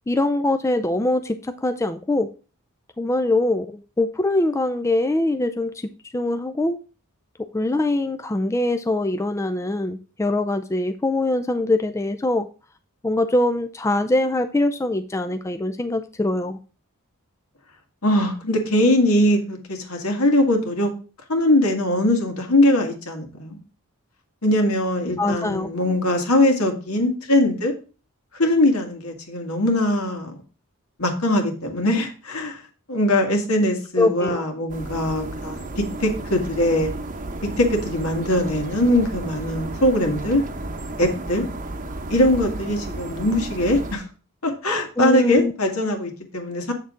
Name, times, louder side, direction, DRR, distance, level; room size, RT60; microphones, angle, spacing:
voice 1, 0.1-2.3 3.0-6.8 7.5-12.5 13.0-16.6 25.2-25.7 34.0-34.5 45.0-45.5, left 2 dB, 15° left, 8 dB, 0.4 m, -23 dB
voice 2, 18.0-20.9 21.3-23.6 24.4-27.7 28.3-30.3 31.0-32.6 32.9-36.9 37.4-40.4 41.0-41.5 42.1-44.1 44.4-46.7, left 1 dB, 70° left, 3 dB, 1.9 m, -21 dB
sound 1, 34.7-44.0, right 2 dB, 35° right, 0.8 m, -33 dB
8.2 x 6.5 x 3.7 m, 0.34 s
head